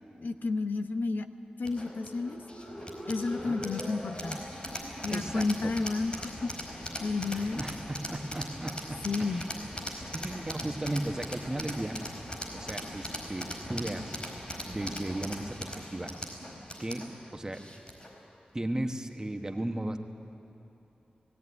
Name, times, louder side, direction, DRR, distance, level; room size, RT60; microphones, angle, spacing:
voice 1, 0.2-1.3 1.6-2.4 3.1-4.4 5.0-6.5 7.0-7.7 9.0-9.5, left 3 dB, 80° left, 8 dB, 0.8 m, -31 dB
sound 1, 1.6-18.2, left 1 dB, 35° left, 4.5 m, -40 dB
voice 2, 5.0-5.7 7.3-9.5 9.9-12.0 12.5-14.2 14.6-16.1 16.8-17.6 18.5-20.0, right 1 dB, 20° right, 5 dB, 1.1 m, -36 dB
17.5 x 17.0 x 9.6 m, 2.9 s
wide cardioid pair, 100°, 3 cm